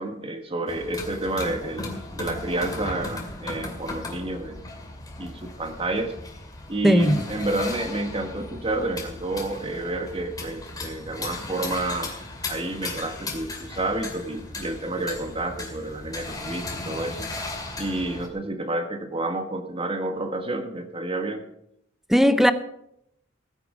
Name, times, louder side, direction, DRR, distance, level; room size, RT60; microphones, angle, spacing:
voice 1, 0.0-4.6 5.2-6.1 6.7-12.1 12.5-17.3 17.8-21.5, right 2 dB, 30° right, 1.5 m, -29 dB
sound 1, 0.7-18.3, left 2 dB, 20° left, 2.3 m, -36 dB
voice 2, 6.8-7.2 22.1-22.5, equal, ahead, 0.7 m, -17 dB
16.0 x 9.9 x 5.0 m
head